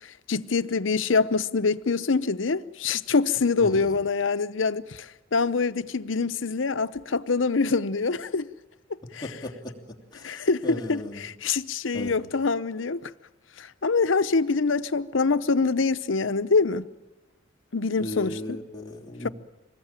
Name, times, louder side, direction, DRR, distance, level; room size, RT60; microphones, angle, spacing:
voice 1, 0.3-8.5 9.1-9.2 10.2-13.1 13.6-16.9 17.7-18.6 19.2-19.3, left 4 dB, 90° left, 0.8 m, -25 dB
voice 2, 3.6-3.9 9.2-9.8 10.1-11.3 11.9-12.2 18.0-19.3, left 1 dB, 20° left, 3.0 m, -36 dB
25.5 x 20.5 x 9.0 m
head